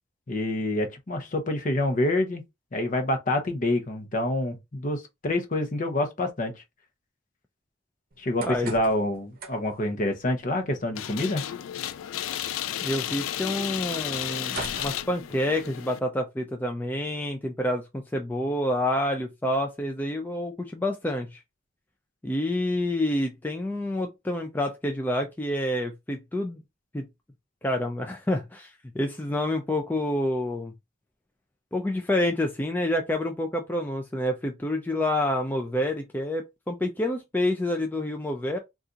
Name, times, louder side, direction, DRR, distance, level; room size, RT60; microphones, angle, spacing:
voice 1, 0.3-2.4 2.7-6.5 8.2-11.4, left 1 dB, 40° left, 0.7 m, -27 dB
baby birth doorhandle, 8.1-15.9, right 3 dB, 50° right, 0.7 m, -45 dB
voice 2, 8.4-8.7 12.8-21.4 22.2-26.6 26.9-27.1 27.6-30.7 31.7-38.6, left 1 dB, 10° left, 0.3 m, -28 dB
sound 1, 11.0-16.0, left 11 dB, 85° left, 0.3 m, -33 dB
2.7 x 2.4 x 3.7 m
head